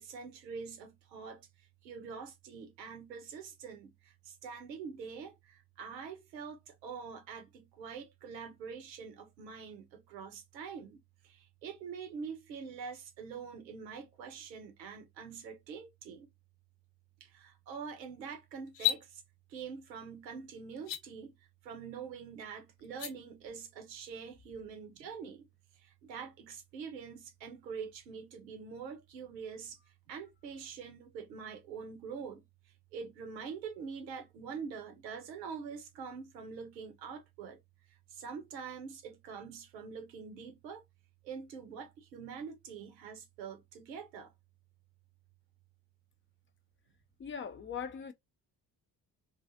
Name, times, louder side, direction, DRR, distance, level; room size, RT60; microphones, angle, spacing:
voice 1, 0.0-1.4 1.8-11.0 11.3-16.3 17.2-19.2 19.5-21.3 21.6-25.5 26.0-29.8 30.1-32.4 32.9-37.6 38.1-40.8 41.2-44.3, right 6 dB, 85° right, 0.7 m, -45 dB
sound 1, 18.7-19.0 20.8-21.0 22.8-23.1, left 12 dB, 75° left, 0.7 m, -31 dB
voice 2, 47.2-48.1, left 7 dB, 25° left, 0.4 m, -40 dB
2.4 x 2.4 x 2.4 m
hypercardioid pair, 45°, 49 cm